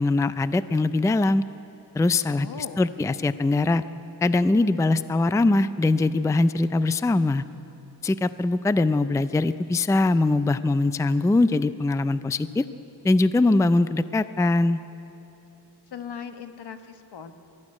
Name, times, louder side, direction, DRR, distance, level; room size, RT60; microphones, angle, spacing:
voice 1, 0.0-1.4 1.9-3.8 4.2-7.4 8.0-12.7 13.0-14.8, left 2 dB, 10° left, 13 dB, 0.4 m, -22 dB
voice 2, 2.4-2.9 15.9-17.3, left 7 dB, 75° left, 7 dB, 1.4 m, -39 dB
21.5 x 14.0 x 9.7 m, 2.9 s
wide cardioid pair, 115°, 40 cm